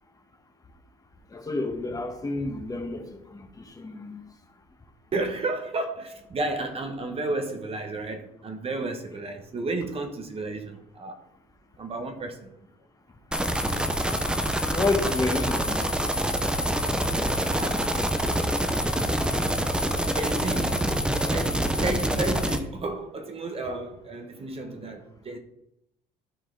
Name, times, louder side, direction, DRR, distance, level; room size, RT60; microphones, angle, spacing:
voice 1, 1.3-4.3 14.7-16.0, left 3 dB, 20° left, 4 dB, 1.3 m, -30 dB
voice 2, 5.1-11.2 11.8-12.7 17.6-17.8 20.1-20.8 21.3-25.4, right 2 dB, 35° right, 5 dB, 1.2 m, -32 dB
sound 1, 13.3-22.6, equal, 5° right, 0.8 m, -26 dB
12.5 x 4.7 x 3.9 m, 0.82 s
cardioid pair, 110°, 17 cm